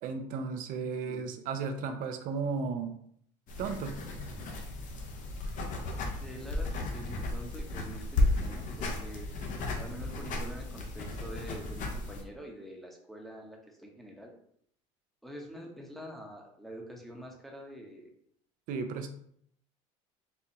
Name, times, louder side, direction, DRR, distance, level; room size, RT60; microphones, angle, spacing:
voice 1, 0.0-2.9 3.6-4.0 18.7-19.1, right 5 dB, 60° right, 7 dB, 0.6 m, -34 dB
sound 1, 3.5-12.2, left 2 dB, 55° left, 0.8 m, -34 dB
voice 2, 6.2-9.3 9.7-14.3 15.2-18.1, equal, ahead, 0 dB, 0.8 m, -46 dB
4.3 x 2.2 x 2.9 m, 0.66 s
supercardioid pair, 90°, 16 cm